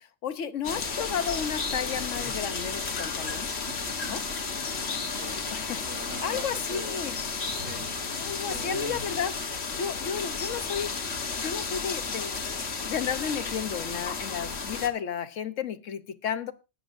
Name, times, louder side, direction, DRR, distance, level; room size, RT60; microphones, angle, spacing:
voice 1, 0.0-3.5 4.1-4.2 5.5-5.8 6.2-7.2 8.2-9.4 9.8-10.9 11.4-12.4 12.9-16.5, left 8 dB, 80° left, 1.3 m, -32 dB
sound 1, 0.6-14.9, left 4 dB, 60° left, 1.5 m, -33 dB
sound 2, 1.2-6.6, left 1 dB, 10° left, 2.4 m, -46 dB
voice 2, 3.4-4.1 4.8-5.4 5.9-7.0 7.6-7.9 8.5-9.0, right 4 dB, 85° right, 1.9 m, -43 dB
sound 3, 7.4-13.1, left 2 dB, 55° right, 6.2 m, -50 dB
19.0 x 9.4 x 2.6 m
omnidirectional pair, 1.3 m